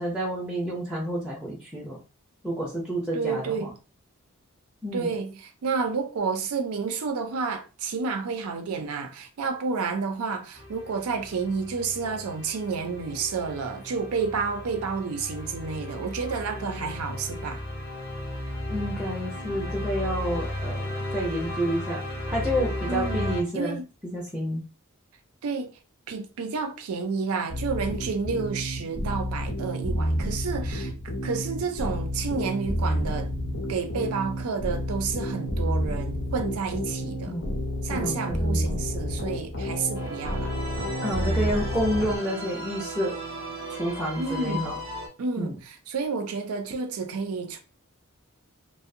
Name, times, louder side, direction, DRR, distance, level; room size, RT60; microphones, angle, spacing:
voice 1, 0.0-2.0 2.4-3.7 4.8-5.1 16.5-16.9 18.7-22.0 22.3-24.6 37.3-37.5 37.9-38.6 41.0-43.2 43.7-44.8 45.4-45.6, equal, 5° right, 0.5 m, -29 dB
voice 2, 3.1-3.7 4.9-17.6 22.9-23.9 25.4-25.8 26.1-30.9 31.2-33.3 33.7-37.4 37.8-40.6 44.2-44.8 45.2-47.6, right 5 dB, 90° right, 0.4 m, -30 dB
sound 1, 10.6-23.4, left 1 dB, 45° left, 0.6 m, -35 dB
sound 2, 27.5-42.2, equal, 75° left, 0.8 m, -30 dB
sound 3, 39.9-45.1, right 1 dB, 45° right, 0.6 m, -36 dB
2.5 x 2.0 x 2.6 m
head